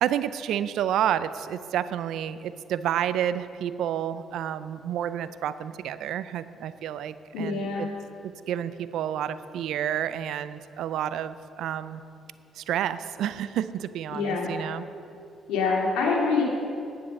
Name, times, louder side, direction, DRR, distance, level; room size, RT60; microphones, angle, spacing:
voice 1, 0.0-7.9 8.5-12.0 12.6-14.8, right 10 dB, 75° right, 14 dB, 0.4 m, -30 dB
voice 2, 7.3-7.9 14.1-14.5 15.5-16.4, left 4 dB, 80° left, -2 dB, 2.4 m, -25 dB
10.5 x 8.4 x 6.4 m, 2.6 s
hypercardioid pair, 55°, 0 cm